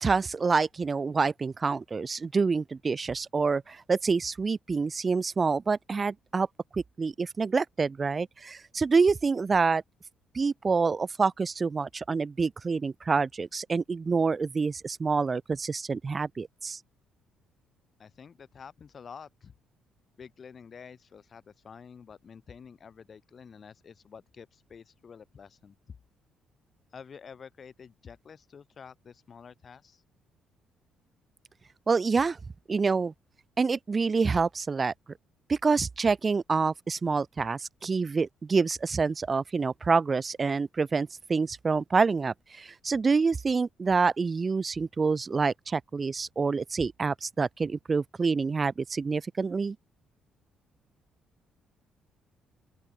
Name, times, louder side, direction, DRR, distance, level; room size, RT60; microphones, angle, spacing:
voice 1, 0.0-6.5 6.7-9.8 10.3-16.8 31.9-32.4 32.7-33.1 33.6-34.9 35.5-49.8, right 4 dB, 25° right, 0.5 m, -27 dB
voice 2, 18.0-19.5 20.2-26.0 26.9-30.0, left 6 dB, 35° left, 4.4 m, -49 dB
open air
cardioid pair, 155°, 0 cm